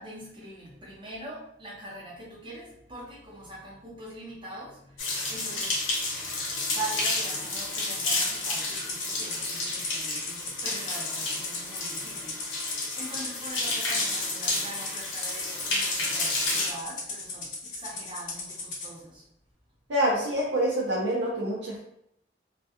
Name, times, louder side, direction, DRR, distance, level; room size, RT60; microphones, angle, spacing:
voice 1, 0.0-19.3, right 1 dB, 25° right, -5 dB, 0.7 m, -42 dB
sound 1, 5.0-16.7, left 2 dB, 80° left, 0.8 m, -30 dB
Rattle (instrument), 8.4-18.9, left 3 dB, 40° left, 0.5 m, -38 dB
voice 2, 19.9-21.8, right 1 dB, 70° right, -4 dB, 0.5 m, -26 dB
2.2 x 2.1 x 2.8 m, 0.75 s
head